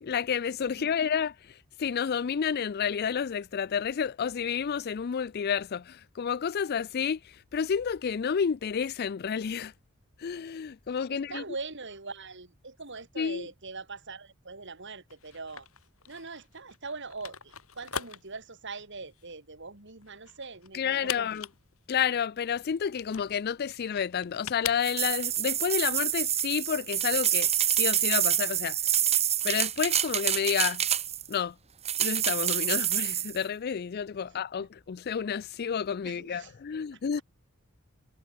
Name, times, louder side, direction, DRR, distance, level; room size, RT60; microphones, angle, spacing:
voice 1, 0.0-9.7 10.2-11.4 13.2-13.5 20.7-21.5 21.9-28.8 29.4-30.8 31.3-31.6 32.0-37.2, left 7 dB, 50° left, 0.4 m, -30 dB
voice 2, 11.1-15.7 16.1-21.3 34.5-34.7 36.0-36.5, right 4 dB, 60° right, 3.8 m, -42 dB
sound 1, 15.1-25.3, left 8 dB, 90° left, 5.7 m, -42 dB
sound 2, 24.8-31.3 31.8-33.4, right 10 dB, 30° right, 1.5 m, -27 dB
head